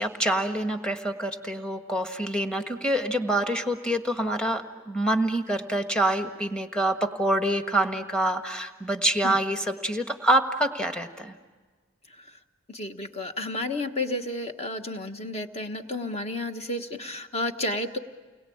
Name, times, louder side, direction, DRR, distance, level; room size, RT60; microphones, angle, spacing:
voice 1, 0.0-11.3, right 1 dB, 5° left, 5 dB, 1.5 m, -26 dB
voice 2, 12.7-18.0, left 2 dB, 30° left, 6 dB, 1.4 m, -31 dB
30.0 x 22.0 x 8.7 m, 1.4 s
head